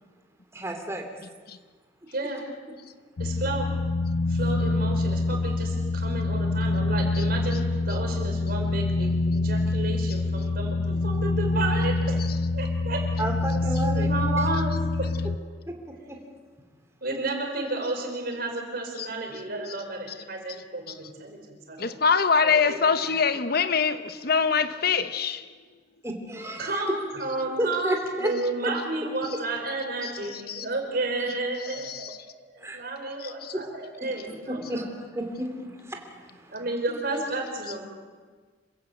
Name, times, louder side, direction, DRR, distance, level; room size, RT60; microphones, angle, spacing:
voice 1, 0.5-1.0 13.2-14.1 15.7-15.8 16.1-16.2 26.0-26.7 27.6-28.3 32.6-32.8 33.5-33.6 34.5-36.5, right 1 dB, 15° right, 2.9 m, -31 dB
voice 2, 2.1-2.5 3.2-3.7 4.2-12.2 12.5-15.1 17.0-22.0 22.4-22.8 26.6-34.9 36.5-37.8, right 2 dB, 55° right, 4.7 m, -32 dB
sound 1, 3.2-15.4, left 2 dB, 90° left, 0.6 m, -26 dB
voice 3, 21.8-25.4 30.5-30.6 31.9-32.1, left 5 dB, 55° left, 1.0 m, -23 dB
27.0 x 16.0 x 7.9 m
head